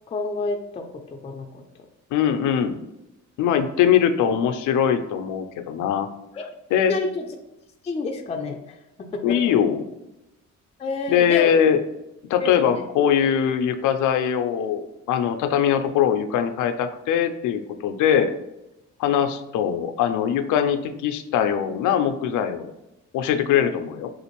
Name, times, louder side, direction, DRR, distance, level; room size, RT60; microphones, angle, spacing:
voice 1, 0.1-0.8 1.1-1.6 6.4-6.5 6.9-7.2 7.8-8.8 9.1-9.4 10.8-11.6 12.4-12.8 18.1-18.2 23.5-23.7, left 3 dB, 20° left, 3 dB, 0.4 m, -29 dB
voice 2, 2.1-2.8 3.4-6.1 6.7-6.9 9.2-9.9 11.1-11.8 12.3-18.3 19.0-22.7 23.1-24.1, left 8 dB, 80° left, 8 dB, 0.4 m, -21 dB
3.6 x 2.5 x 2.9 m, 0.94 s
cardioid pair, 90°, 30 cm